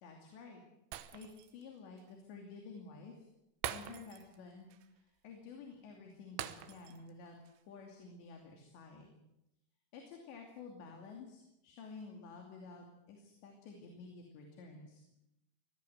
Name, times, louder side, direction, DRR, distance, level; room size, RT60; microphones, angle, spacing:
voice 1, 0.0-0.6 1.1-3.3 3.7-7.4 7.7-9.2 9.9-15.0, left 4 dB, 85° left, 2 dB, 5.0 m, -51 dB
Shatter, 0.9-1.6 2.0-2.1 3.6-4.4 4.7-4.9 6.4-7.1 7.5-7.6, right 11 dB, 85° right, 3.4 m, -44 dB
25.0 x 18.0 x 8.0 m, 0.87 s
omnidirectional pair, 4.9 m